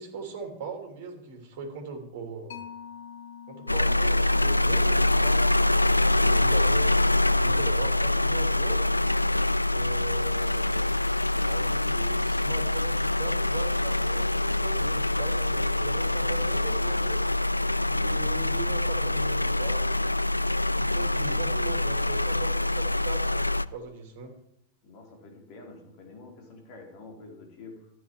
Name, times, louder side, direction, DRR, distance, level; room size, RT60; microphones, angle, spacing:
voice 1, 0.0-2.6 3.5-8.8 9.7-10.9 11.4-17.3 17.8-20.1 20.8-24.3, right 5 dB, 50° right, 4 dB, 3.0 m, -40 dB
Mallet percussion, 2.5-9.6, left 8 dB, 60° left, 1.2 m, -49 dB
sound 1, 3.7-23.7, left 2 dB, 85° left, 0.3 m, -25 dB
voice 2, 24.8-27.9, left 3 dB, 45° left, 1 dB, 3.9 m, -47 dB
14.0 x 9.7 x 4.7 m, 0.77 s
figure-of-eight pair, 90°, 0 cm